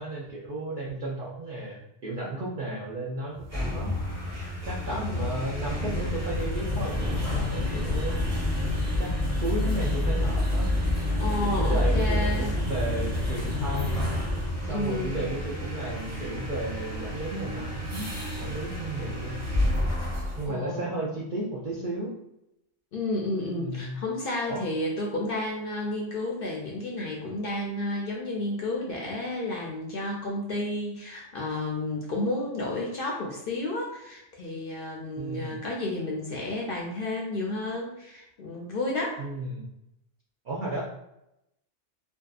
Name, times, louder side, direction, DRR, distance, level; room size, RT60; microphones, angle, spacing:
voice 1, 0.0-3.9 4.6-8.2 9.0-10.7 11.4-14.1 14.6-19.4 20.4-22.1 23.6-24.0 24.5-24.6 35.2-35.6 39.2-39.6 40.4-40.8, right 2 dB, 60° right, -6 dB, 0.5 m, -34 dB
sound 1, 3.3-20.5, left 1 dB, 15° right, 0.9 m, -28 dB
voice 2, 4.4-5.4 11.2-12.5 14.7-15.3 20.5-20.9 22.9-39.2, left 2 dB, 60° left, -2 dB, 0.6 m, -32 dB
2.6 x 2.3 x 2.3 m, 0.85 s
omnidirectional pair, 1.3 m